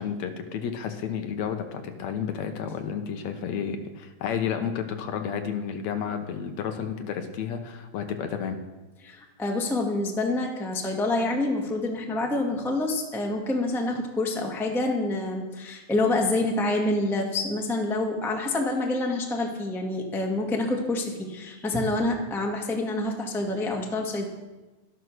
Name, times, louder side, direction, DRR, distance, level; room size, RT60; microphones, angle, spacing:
voice 1, 0.0-8.6, left 7 dB, 75° left, 7 dB, 2.0 m, -31 dB
voice 2, 9.0-24.3, left 2 dB, ahead, 0 dB, 0.8 m, -27 dB
12.5 x 11.0 x 6.4 m, 1.1 s
omnidirectional pair, 3.5 m